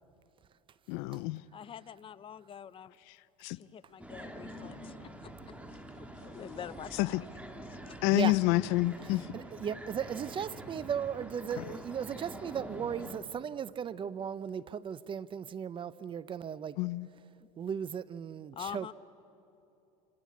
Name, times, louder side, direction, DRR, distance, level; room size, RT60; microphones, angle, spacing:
voice 1, 0.9-1.4 3.4-3.6 7.0-7.2 8.0-9.3 11.6-11.7 16.8-17.1, left 20 dB, 70° left, 0.6 m, -28 dB
voice 2, 1.5-3.0 3.4-5.3 6.0-7.3 7.6-8.0 8.2-8.3 17.4-17.5 18.5-18.9, left 9 dB, 30° left, 0.8 m, -46 dB
sound 1, 4.0-13.2, right 1 dB, 5° right, 2.4 m, -46 dB
voice 3, 9.3-16.8 17.6-18.9, right 8 dB, 30° right, 0.7 m, -36 dB
26.5 x 26.5 x 8.5 m
supercardioid pair, 115°, 17 cm